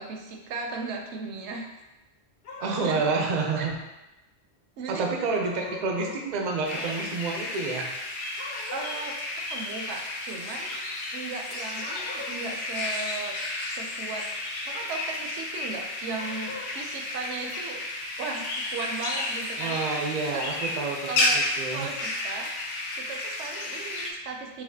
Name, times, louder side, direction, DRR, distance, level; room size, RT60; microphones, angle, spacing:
voice 1, 0.0-1.7 2.8-3.1 4.8-5.1 6.8-6.9 8.7-9.2 9.5-10.8 11.1-13.4 13.7-14.3 14.6-17.8 18.2-19.8 20.3-20.6 21.1-21.4 21.7-22.5 22.9-24.6, right 4 dB, 75° right, 2 dB, 0.9 m, -36 dB
sound 1, 2.4-3.2 5.4-6.2 8.4-9.0 11.7-12.5 16.1-16.7, left 3 dB, 60° left, 1.0 m, -41 dB
voice 2, 2.6-3.8 4.9-7.9 19.6-21.9, right 4 dB, 50° right, 1 dB, 0.5 m, -29 dB
sound 2, 6.6-24.1, left 2 dB, 85° left, 0.9 m, -32 dB
4.1 x 2.7 x 2.7 m, 0.99 s
omnidirectional pair, 1.2 m